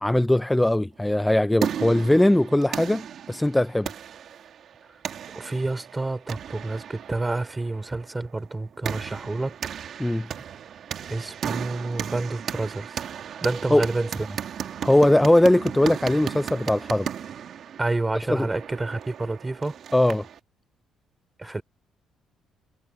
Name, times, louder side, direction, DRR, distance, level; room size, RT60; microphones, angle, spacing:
voice 1, 0.0-3.9 10.0-10.3 13.7-13.9 14.8-17.1 18.3-18.5 19.9-20.2 21.4-21.6, left 1 dB, 10° left, 0.4 m, -20 dB
sound 1, 1.2-20.4, right 8 dB, 60° right, 2.2 m, -36 dB
voice 2, 5.3-9.6 11.1-13.0 13.4-14.5 17.8-19.8 21.4-21.6, right 2 dB, 20° right, 4.1 m, -29 dB
cardioid pair, 85°, 0 cm